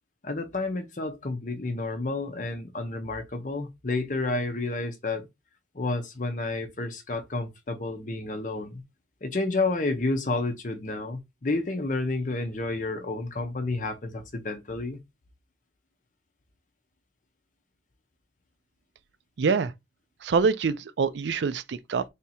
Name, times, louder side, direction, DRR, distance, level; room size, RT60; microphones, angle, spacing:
voice 1, 0.2-5.3 5.7-8.8 9.2-15.0, left 2 dB, 45° left, 0.7 m, -30 dB
voice 2, 19.4-19.7 20.2-22.0, right 5 dB, 75° right, 0.4 m, -25 dB
3.5 x 2.7 x 4.1 m
head